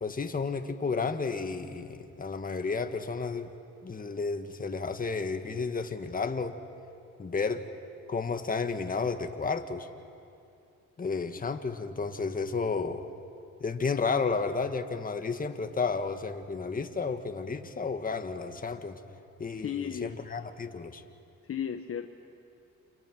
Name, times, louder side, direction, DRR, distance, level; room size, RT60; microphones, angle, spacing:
voice 1, 0.0-3.5 3.8-6.6 7.2-7.6 8.1-9.9 11.0-13.0 13.6-19.0 19.4-21.0, left 4 dB, 30° left, 7 dB, 1.7 m, -32 dB
voice 2, 19.6-20.1 21.5-22.1, left 8 dB, 50° left, 6 dB, 1.2 m, -34 dB
30.0 x 28.0 x 6.2 m, 2.6 s
cardioid pair, 90°, 30 cm